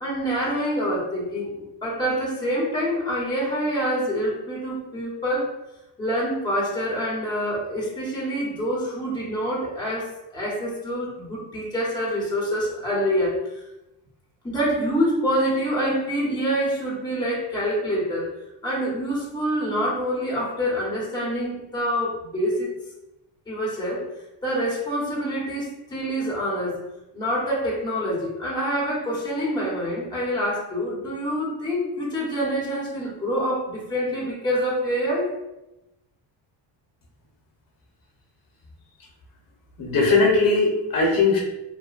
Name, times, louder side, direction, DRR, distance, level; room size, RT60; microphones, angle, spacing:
voice 1, 0.0-1.5 1.8-5.5 6.0-13.4 14.4-18.3 18.6-22.7 23.5-24.0 24.4-26.8 27.1-35.3, equal, 10° left, -5 dB, 1.0 m, -26 dB
voice 2, 39.8-41.4, left 3 dB, 50° left, -2 dB, 1.0 m, -19 dB
3.0 x 2.1 x 2.4 m, 0.94 s
cardioid pair, 100°, 43 cm